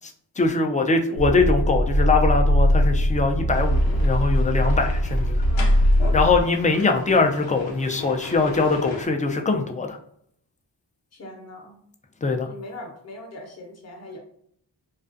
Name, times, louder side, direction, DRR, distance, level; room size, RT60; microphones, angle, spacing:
voice 1, 0.4-5.4 6.1-10.0 12.2-12.5, left 3 dB, 20° left, 4 dB, 0.3 m, -22 dB
sound 1, 1.2-6.4, equal, 75° right, 0.7 m, -20 dB
sound 2, 3.5-9.1, left 3 dB, 90° left, 0.6 m, -38 dB
voice 2, 5.5-6.0 7.0-7.2 11.1-11.8 12.4-14.2, left 1 dB, 35° left, 2 dB, 0.7 m, -40 dB
2.4 x 2.3 x 2.5 m, 0.68 s
cardioid pair, 45°, 45 cm